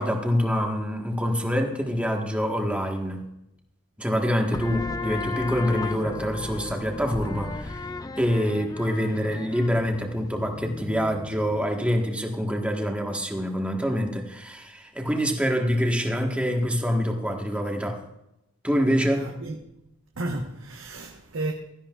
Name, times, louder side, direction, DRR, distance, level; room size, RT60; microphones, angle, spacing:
voice 1, 0.0-3.3 4.0-7.8 8.2-18.0 18.6-19.3, equal, 5° right, 1.4 m, -26 dB
sound 1, 4.5-11.8, left 3 dB, 15° left, 0.4 m, -35 dB
voice 2, 19.1-19.6 20.2-21.5, right 2 dB, 70° right, 1.2 m, -32 dB
16.5 x 13.0 x 2.4 m
head